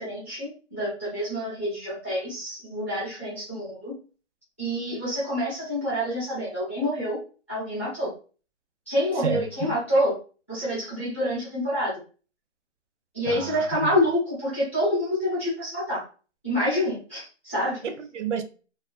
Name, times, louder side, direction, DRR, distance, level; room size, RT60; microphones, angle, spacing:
voice 1, 0.0-3.9 4.6-7.2 7.5-8.1 8.9-10.1 10.5-11.9 13.1-16.0 16.4-17.8, equal, 10° left, 0.6 m, -27 dB
voice 2, 9.2-9.8 13.3-13.9 17.8-18.4, right 6 dB, 75° right, 0.6 m, -30 dB
2.4 x 2.2 x 2.5 m
hypercardioid pair, 170°, 36 cm